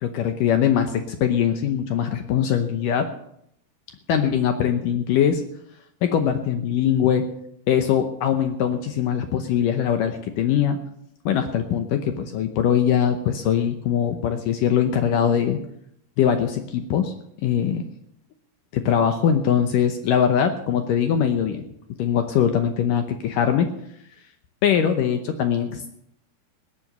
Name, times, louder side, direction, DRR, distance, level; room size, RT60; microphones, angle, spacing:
voice 1, 0.0-3.1 4.1-5.4 6.0-7.2 7.7-10.8 11.3-15.6 16.2-17.1 17.4-17.8 18.7-21.6 22.0-23.7 24.6-25.9, left 8 dB, 70° left, 7 dB, 2.1 m, -22 dB
19.5 x 7.7 x 6.7 m, 0.74 s
omnidirectional pair, 4.7 m